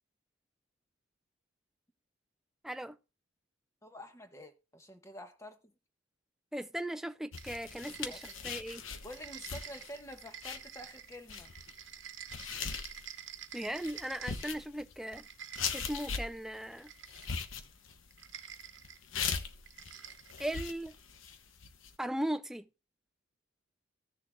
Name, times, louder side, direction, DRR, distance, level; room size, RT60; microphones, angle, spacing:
voice 1, 2.6-3.0 6.5-8.8 13.5-15.2 15.7-16.9 20.4-20.9 22.0-22.7, right 1 dB, ahead, 0.4 m, -37 dB
voice 2, 3.8-5.7 8.1-8.6 9.0-11.5, equal, 15° left, 1.1 m, -49 dB
sound 1, 7.3-21.9, left 6 dB, 80° left, 1.0 m, -40 dB
sound 2, 7.4-8.7 9.0-14.6 15.0-16.2 16.8-17.5 18.1-19.0 19.7-20.7, right 9 dB, 70° right, 1.0 m, -49 dB
16.0 x 6.7 x 2.3 m
head